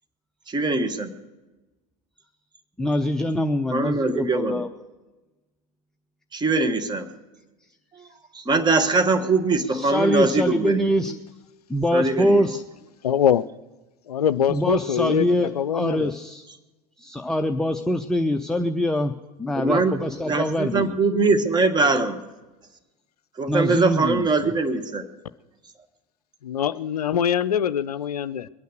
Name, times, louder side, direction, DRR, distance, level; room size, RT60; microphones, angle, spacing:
voice 1, 0.5-1.1 3.7-4.6 6.3-7.1 8.3-10.9 11.9-12.4 19.6-19.9 20.3-22.2 23.4-25.0, right 3 dB, 20° right, 8 dB, 1.4 m, -22 dB
voice 2, 2.8-4.7 9.7-11.2 11.7-12.6 14.5-16.5 17.0-19.1 19.4-21.0 23.5-24.5, left 1 dB, 5° left, 6 dB, 0.6 m, -24 dB
voice 3, 13.0-13.5 14.1-16.1 26.4-28.5, left 9 dB, 75° left, 17 dB, 0.4 m, -23 dB
22.0 x 9.2 x 6.6 m, 1.1 s
figure-of-eight pair, 75°, 20 cm